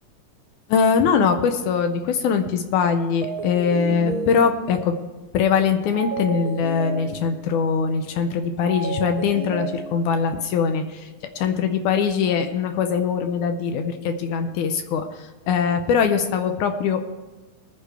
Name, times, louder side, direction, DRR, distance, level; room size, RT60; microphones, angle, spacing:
voice 1, 0.7-5.0 5.3-11.1 11.4-17.0, left 6 dB, 80° left, 7 dB, 2.1 m, -22 dB
sound 1, 3.2-4.9 5.9-7.6 8.7-10.4, right 3 dB, 55° right, 1.0 m, -31 dB
20.0 x 9.7 x 3.3 m, 1.3 s
omnidirectional pair, 3.6 m